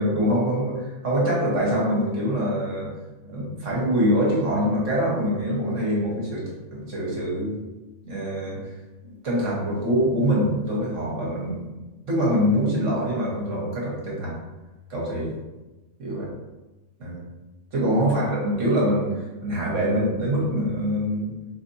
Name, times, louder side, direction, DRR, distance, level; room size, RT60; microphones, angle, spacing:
voice 1, 0.0-2.9 3.2-7.6 8.0-8.7 9.0-11.6 12.1-14.4 14.9-15.3 16.0-16.3 17.0-17.2 17.7-21.3, equal, 60° right, -4 dB, 1.6 m, -24 dB
4.4 x 3.3 x 2.7 m, 1.1 s
omnidirectional pair, 1.5 m